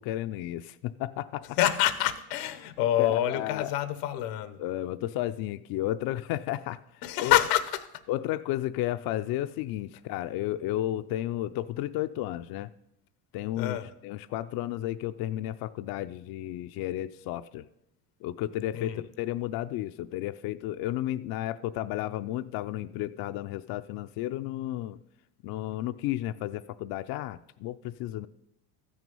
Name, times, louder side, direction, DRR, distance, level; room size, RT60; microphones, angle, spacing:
voice 1, 0.0-1.6 3.0-3.7 4.6-7.4 8.1-12.7 13.3-13.8 14.0-17.7 18.2-25.0 25.4-28.3, left 14 dB, 50° left, 11 dB, 0.5 m, -33 dB
voice 2, 1.6-4.6 7.0-8.0 13.6-13.9 18.7-19.0, left 12 dB, 85° left, 14 dB, 1.0 m, -27 dB
14.0 x 6.2 x 5.4 m, 0.84 s
supercardioid pair, 95°, 46 cm